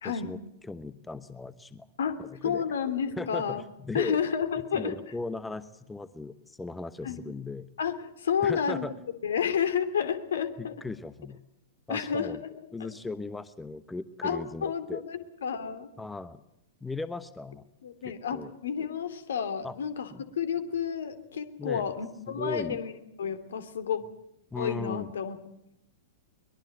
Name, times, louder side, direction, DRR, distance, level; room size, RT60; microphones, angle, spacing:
voice 1, 0.0-0.4 0.7-1.9 2.2-2.6 3.2-4.2 4.7-7.7 8.4-8.9 10.6-11.4 11.9-12.4 12.7-15.0 16.0-16.4 16.8-17.6 18.3-18.5 19.6-19.7 20.1-20.2 21.6-21.9 22.3-22.8 24.5-25.1, left 3 dB, 10° left, 15 dB, 1.0 m, -37 dB
voice 2, 2.0-3.6 3.9-4.9 7.0-7.2 7.8-8.9 9.2-10.7 11.9-12.5 14.2-15.9 17.8-22.9 23.2-24.0 24.6-25.4, left 7 dB, 60° left, 11 dB, 2.7 m, -30 dB
23.5 x 22.0 x 8.0 m, 0.82 s
figure-of-eight pair, 100°, 0 cm